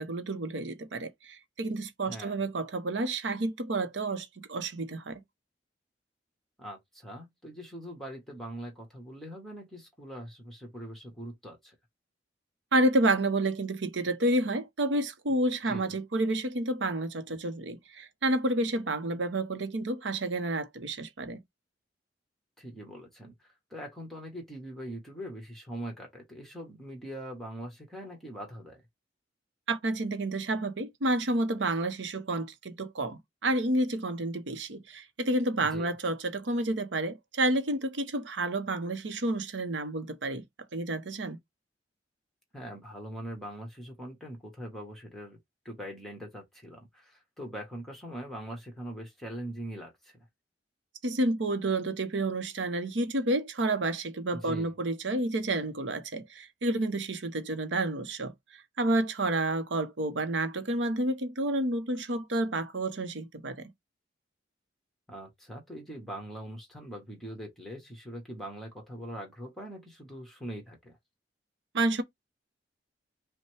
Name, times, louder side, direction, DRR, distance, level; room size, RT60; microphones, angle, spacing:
voice 1, 0.0-5.2 12.7-21.4 29.7-40.4 40.7-41.4 51.0-63.7 71.7-72.0, right 2 dB, 85° right, 0.8 m, -30 dB
voice 2, 2.1-2.4 6.6-11.7 15.6-15.9 22.6-28.8 35.6-35.9 42.5-45.4 45.6-50.2 54.3-54.7 65.1-71.0, right 1 dB, ahead, 1.4 m, -42 dB
5.4 x 2.2 x 3.3 m
head